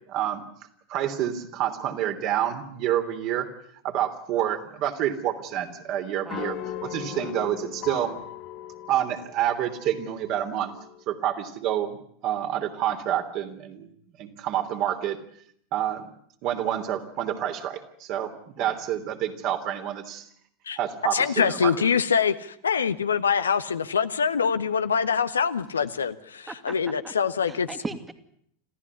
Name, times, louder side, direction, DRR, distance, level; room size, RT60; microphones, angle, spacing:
voice 1, 0.1-0.4 0.9-3.5 3.8-6.6 6.9-8.2 8.9-10.7 11.1-12.0 12.2-13.9 14.2-15.2 15.7-16.0 16.4-18.3 18.6-20.3 20.8-21.7, right 11 dB, 45° right, 6 dB, 3.2 m, -28 dB
sound 1, 4.9-11.0, left 11 dB, 50° left, 1.6 m, -39 dB
voice 2, 6.2-6.6 7.1-7.4 18.6-18.8 26.5-26.8 27.0-27.1 27.4-28.1, right 3 dB, 15° right, 9 dB, 2.4 m, -38 dB
voice 3, 21.1-22.3 22.6-27.7, left 6 dB, 80° left, 11 dB, 1.1 m, -24 dB
27.0 x 15.0 x 9.7 m, 0.69 s
figure-of-eight pair, 85°, 0 cm